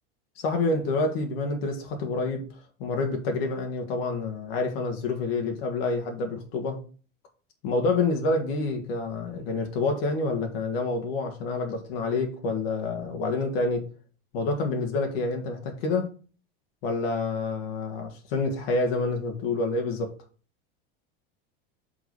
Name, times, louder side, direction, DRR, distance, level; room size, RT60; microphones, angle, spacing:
voice 1, 0.4-2.5 2.8-6.8 7.6-13.9 14.3-16.1 16.8-20.1, left 3 dB, 75° left, 1.8 m, -28 dB
5.9 x 3.9 x 5.9 m
supercardioid pair, 110°, 30 cm